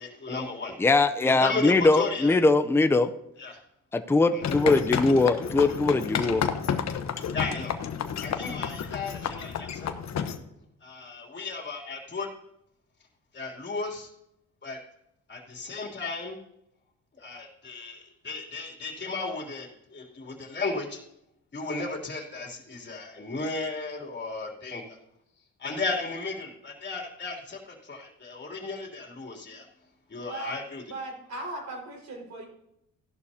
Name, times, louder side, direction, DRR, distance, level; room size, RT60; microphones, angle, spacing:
voice 1, 0.0-0.8 1.2-2.4 3.4-3.6 4.3-4.5 7.3-7.7 8.2-9.9 10.8-12.3 13.3-14.1 14.6-14.8 15.3-16.4 17.1-21.0 21.5-25.0 25.6-29.7 30.1-30.8, left 3 dB, 35° left, -2 dB, 3.2 m, -35 dB
voice 2, 0.8-3.1 3.9-6.4, left 3 dB, 10° left, 8 dB, 0.6 m, -21 dB
sound 1, 4.4-10.4, left 7 dB, 60° left, 1.1 m, -31 dB
voice 3, 30.9-32.5, right 2 dB, 65° right, 1 dB, 5.1 m, -37 dB
15.5 x 11.5 x 2.8 m, 0.81 s
cardioid pair, 90°, 30 cm